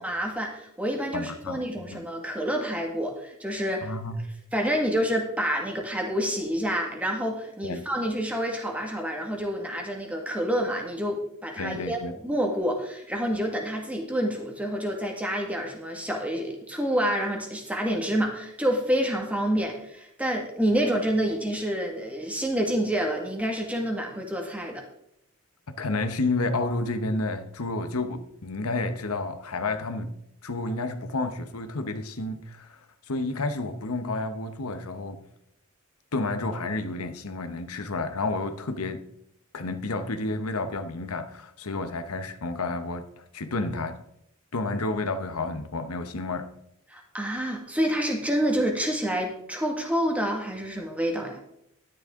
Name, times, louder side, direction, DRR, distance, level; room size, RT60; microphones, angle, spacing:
voice 1, 0.0-3.9 4.5-24.8 46.9-51.4, equal, 5° right, 1.9 m, -28 dB
voice 2, 1.1-2.0 3.8-4.2 7.6-7.8 11.6-12.1 25.7-30.1 30.4-32.8 33.1-35.2 36.1-39.0 39.5-44.0 44.5-46.5, left 2 dB, 90° left, 1.1 m, -30 dB
12.5 x 10.5 x 3.8 m
head